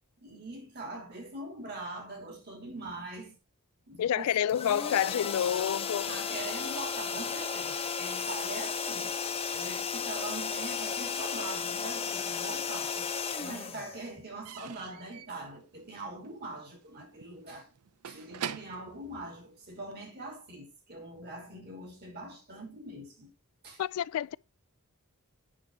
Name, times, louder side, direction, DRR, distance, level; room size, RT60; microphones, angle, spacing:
voice 1, 0.2-3.4 3.9-4.3 4.6-5.1 6.0-9.1 9.5-13.1 13.4-17.7 18.0-23.3 23.6-23.8, right 2 dB, 45° right, 3.2 m, -43 dB
voice 2, 4.0-6.1 23.8-24.4, left 10 dB, 70° left, 0.3 m, -28 dB
sound 1, 4.5-14.5, left 6 dB, 25° left, 0.9 m, -34 dB
Slam / Squeak / Wood, 13.3-20.1, right 8 dB, 85° right, 0.6 m, -45 dB
8.7 x 6.2 x 3.9 m
head